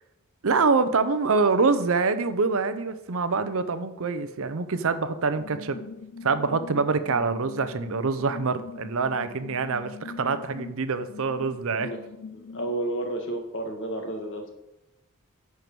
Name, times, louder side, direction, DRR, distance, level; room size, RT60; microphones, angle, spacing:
voice 1, 0.4-5.8 6.2-11.9, right 4 dB, 65° right, 11 dB, 0.6 m, -25 dB
sound 1, 5.4-12.7, left 4 dB, 75° left, 0.8 m, -42 dB
voice 2, 12.3-14.5, right 1 dB, 60° left, 4 dB, 1.6 m, -31 dB
10.5 x 4.7 x 6.1 m, 0.92 s
head